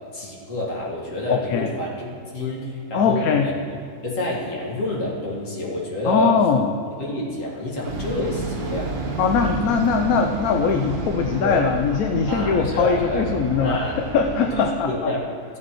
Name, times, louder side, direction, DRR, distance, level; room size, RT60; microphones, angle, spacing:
voice 1, 0.1-3.5 4.0-6.4 6.9-8.9 11.4-11.7 12.3-13.2 13.6-14.0 14.6-15.2, left 1 dB, 60° left, -3 dB, 2.1 m, -28 dB
voice 2, 1.3-1.7 2.9-3.5 6.0-6.7 9.2-15.1, left 6 dB, 75° left, 4 dB, 1.0 m, -21 dB
sound 1, 7.8-14.6, right 2 dB, 85° right, 1.7 m, -31 dB
15.0 x 7.5 x 3.0 m, 2.4 s
omnidirectional pair, 1.6 m